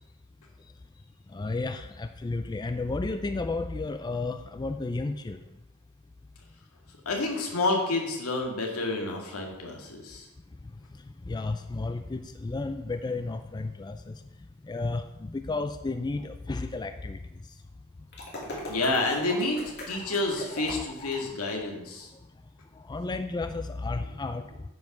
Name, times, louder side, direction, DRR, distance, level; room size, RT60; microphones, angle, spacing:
voice 1, 1.3-5.4 11.3-14.2 14.6-17.2 20.0-20.2 20.6-21.4 22.8-24.4, left 3 dB, 20° left, 9 dB, 0.3 m, -33 dB
voice 2, 7.1-10.3 18.5-22.1, left 2 dB, 80° left, 1 dB, 1.9 m, -29 dB
sound 1, 18.1-21.2, left 1 dB, 50° left, 2.6 m, -39 dB
9.3 x 5.5 x 6.0 m, 0.95 s
head